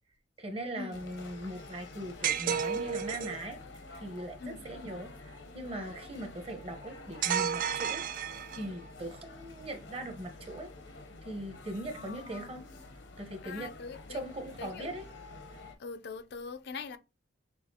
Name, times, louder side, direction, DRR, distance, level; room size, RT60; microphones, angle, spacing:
voice 1, 0.4-10.7 11.2-12.6 13.2-13.7 14.1-15.0, right 1 dB, 30° right, 0.9 m, -40 dB
sound 1, 0.9-15.8, left 2 dB, 80° left, 0.8 m, -49 dB
sound 2, 2.2-3.4 7.2-8.8, right 8 dB, 45° right, 0.3 m, -32 dB
voice 2, 11.9-12.6 13.4-14.2 14.6-14.9 15.8-17.0, left 5 dB, 60° left, 0.4 m, -42 dB
6.4 x 2.4 x 2.8 m
head